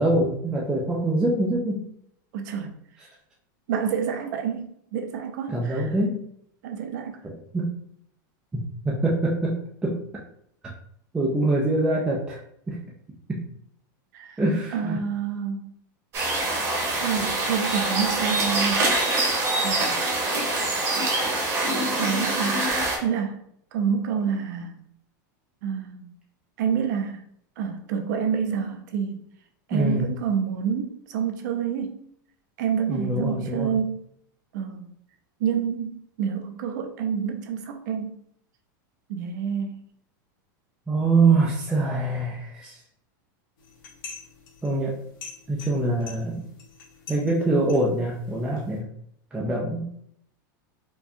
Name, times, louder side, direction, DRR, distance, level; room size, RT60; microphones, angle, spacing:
voice 1, 0.0-1.9 5.5-6.2 7.2-7.7 8.5-9.6 9.8-10.0 11.1-12.4 12.7-12.8 13.3-13.4 14.4-15.0 29.7-30.1 32.9-33.7 40.9-42.8 44.6-45.0 45.5-46.5 47.1-48.9 49.3-49.8, right 2 dB, 5° right, -4 dB, 0.4 m, -24 dB
voice 2, 2.3-2.7 3.7-5.9 6.6-7.2 14.1-14.4 14.7-15.7 17.0-18.9 19.6-20.0 22.0-22.7 23.0-23.4 23.7-24.7 25.6-26.1 26.6-27.2 27.6-29.2 29.7-32.0 32.6-34.1 34.5-34.9 35.4-38.2 39.1-39.8, right 7 dB, 60° right, 6 dB, 0.6 m, -28 dB
sound 1, 16.1-23.0, right 2 dB, 25° right, 0.9 m, -24 dB
sound 2, 43.6-48.8, left 5 dB, 80° left, 1.3 m, -45 dB
4.5 x 2.2 x 2.7 m, 0.69 s
supercardioid pair, 165°, 11 cm